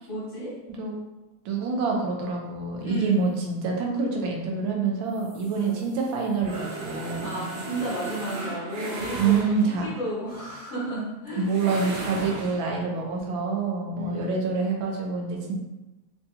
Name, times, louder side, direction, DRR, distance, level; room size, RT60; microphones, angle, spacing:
voice 1, 0.1-0.5 2.8-3.3 5.5-5.8 7.2-9.5 9.8-11.5 13.9-14.6, equal, 40° left, -10 dB, 1.6 m, -32 dB
voice 2, 1.4-7.4 9.2-9.9 11.4-15.5, right 5 dB, 90° right, 0 dB, 1.4 m, -26 dB
sound 1, 5.1-9.9 11.5-12.7, right 2 dB, 65° right, 1.4 m, -36 dB
3.8 x 2.7 x 2.3 m, 1.0 s
omnidirectional pair, 2.1 m